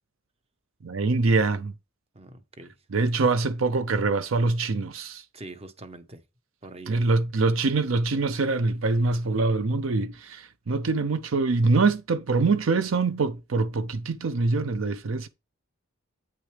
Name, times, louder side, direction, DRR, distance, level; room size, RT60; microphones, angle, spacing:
voice 1, 0.8-1.7 2.9-5.2 6.9-15.3, right 3 dB, 70° right, 0.6 m, -24 dB
voice 2, 2.1-2.7 3.2-3.3 5.3-6.2 6.6-7.1, right 1 dB, 30° right, 1.0 m, -41 dB
8.9 x 6.2 x 3.3 m
head